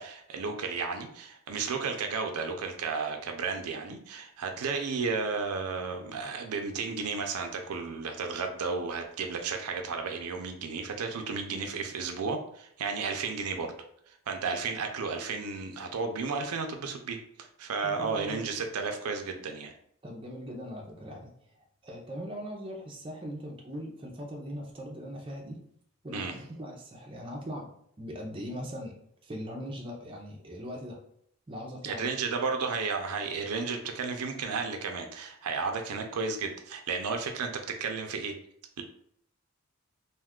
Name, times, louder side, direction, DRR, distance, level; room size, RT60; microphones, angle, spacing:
voice 1, 0.0-13.7 14.1-19.7 26.1-26.3 31.8-38.3, right 4 dB, 85° right, 5 dB, 0.5 m, -33 dB
voice 2, 17.8-18.5 20.0-21.3 21.8-25.6 26.0-27.7 28.0-29.0 29.2-31.0 31.5-32.1, equal, 25° right, -1 dB, 0.4 m, -40 dB
2.5 x 2.3 x 3.5 m, 0.68 s
head